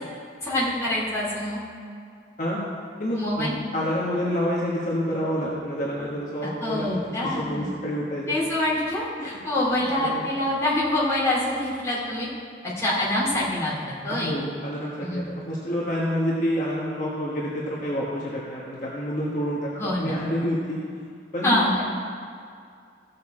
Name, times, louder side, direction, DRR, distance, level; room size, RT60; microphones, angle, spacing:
voice 1, 0.4-1.6 3.1-3.6 6.4-7.7 8.3-12.3 12.8-14.4 15.0-15.3 19.7-20.2 21.4-21.8, left 1 dB, 15° left, -8 dB, 2.7 m, -25 dB
voice 2, 3.0-6.9 7.2-8.3 9.2-9.4 10.0-10.2 13.1-13.2 14.1-19.7 20.0-20.8 21.3-21.8, equal, 45° left, -6 dB, 1.3 m, -28 dB
15.0 x 6.8 x 4.3 m, 2.3 s
head